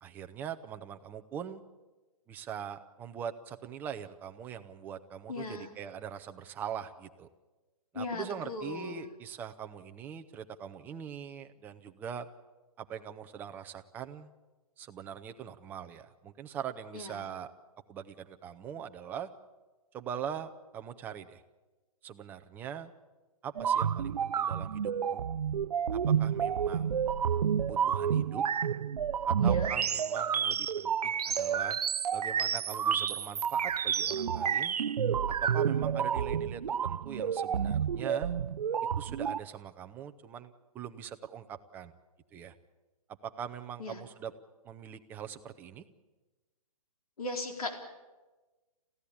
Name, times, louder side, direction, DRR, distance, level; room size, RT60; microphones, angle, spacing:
voice 1, 0.0-1.6 2.3-7.3 7.9-12.3 12.8-14.3 14.8-17.5 17.9-19.3 19.9-21.4 22.0-22.9 23.4-25.3 25.9-27.0 27.6-28.5 29.3-31.8 32.1-34.8 35.4-38.3 39.0-41.9 42.3-42.5 43.2-44.3 44.6-45.9, right 8 dB, 10° right, 7 dB, 0.7 m, -42 dB
voice 2, 5.3-5.7 7.9-9.1 16.9-17.3 29.4-29.7 43.8-44.0 47.2-47.8, left 2 dB, 70° left, 4 dB, 4.4 m, -38 dB
sound 1, 23.5-39.4, right 8 dB, 90° right, 0.7 m, -30 dB
28.0 x 15.5 x 8.6 m, 1.2 s
hypercardioid pair, 160°, 19 cm